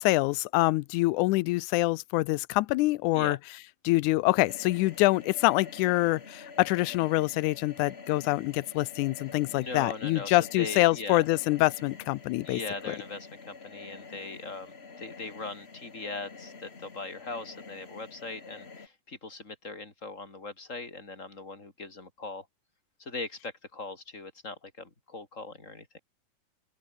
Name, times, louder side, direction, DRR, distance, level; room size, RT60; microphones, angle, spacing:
voice 1, 0.0-3.4 3.8-12.6, left 20 dB, 80° left, 1.8 m, -25 dB
sound 1, 4.5-18.9, left 4 dB, 40° left, 0.9 m, -47 dB
voice 2, 9.5-11.3 12.4-22.5 23.0-26.0, left 3 dB, 20° left, 4.4 m, -40 dB
open air
omnidirectional pair, 4.0 m